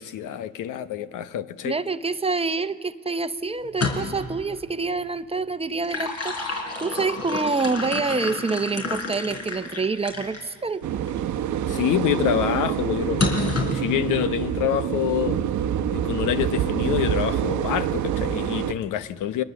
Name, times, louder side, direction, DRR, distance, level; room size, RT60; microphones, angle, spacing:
voice 1, 0.0-1.8 11.7-15.4 15.9-19.4, left 11 dB, 90° left, 0.9 m, -26 dB
voice 2, 1.6-10.8, right 4 dB, 20° right, 0.8 m, -27 dB
sound 1, 3.6-4.3 5.6-10.5 11.1-11.2 13.2-13.8, left 3 dB, 55° left, 4.7 m, -29 dB
sound 2, 10.8-18.7, right 9 dB, 75° right, 1.0 m, -26 dB
29.5 x 23.5 x 7.1 m
cardioid pair, 90°, 30 cm